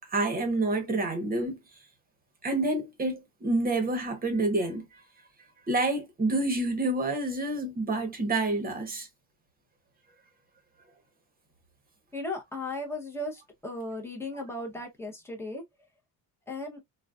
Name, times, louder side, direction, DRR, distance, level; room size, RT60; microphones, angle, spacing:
voice 1, 0.1-1.6 2.4-5.0 5.7-9.1, right 2 dB, 20° right, 1.0 m, -28 dB
voice 2, 12.1-15.6 16.5-16.8, left 2 dB, 5° left, 0.8 m, -36 dB
3.9 x 2.3 x 2.3 m
cardioid pair, 175°, 41 cm